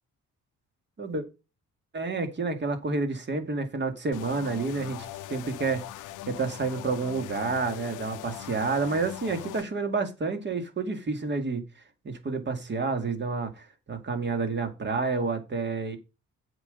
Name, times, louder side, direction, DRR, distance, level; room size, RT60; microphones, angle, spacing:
voice 1, 1.9-5.8 6.3-11.6 12.0-16.0, right 4 dB, 35° right, 2.3 m, -29 dB
sound 1, 4.1-9.6, left 14 dB, 85° left, 0.7 m, -40 dB
8.1 x 5.4 x 6.6 m
cardioid pair, 90°, 30 cm